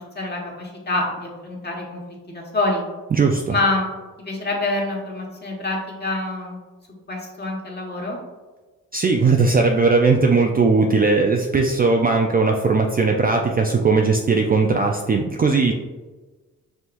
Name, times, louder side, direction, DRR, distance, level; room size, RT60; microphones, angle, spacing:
voice 1, 0.0-2.0 2.3-2.8 3.5-3.9 4.2-6.6 7.1-8.2, left 2 dB, 25° left, -2 dB, 1.4 m, -26 dB
voice 2, 3.1-3.5 8.9-15.7, right 4 dB, 25° right, 2 dB, 0.4 m, -18 dB
5.5 x 2.8 x 2.5 m, 1.3 s
supercardioid pair, 50°, 36 cm